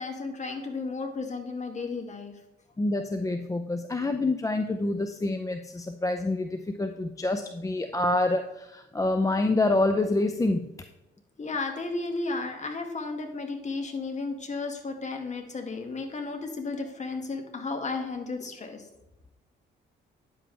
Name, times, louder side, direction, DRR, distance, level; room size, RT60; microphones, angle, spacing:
voice 1, 0.0-2.3 11.4-18.9, left 3 dB, 35° left, 4 dB, 1.9 m, -33 dB
voice 2, 2.8-10.7, left 2 dB, 15° left, 7 dB, 0.6 m, -27 dB
9.8 x 7.6 x 3.3 m, 0.91 s
cardioid pair, 90°, 20 cm